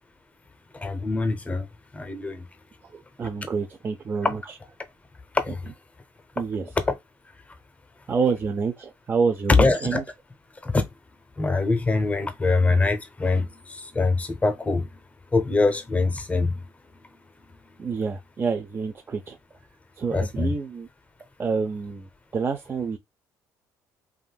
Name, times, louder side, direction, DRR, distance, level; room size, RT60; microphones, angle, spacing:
voice 1, 0.7-1.7 1.9-2.4 4.2-4.3 5.3-5.6 6.9-7.0 9.6-10.0 10.6-10.8 11.4-14.9 15.3-16.6 20.1-20.5, left 3 dB, 20° left, 0.7 m, -23 dB
voice 2, 2.9-4.4 6.4-6.7 8.1-10.0 17.8-19.4 20.0-20.9 21.4-23.0, right 5 dB, 30° right, 0.5 m, -27 dB
3.5 x 2.6 x 2.3 m
supercardioid pair, 90°, 7 cm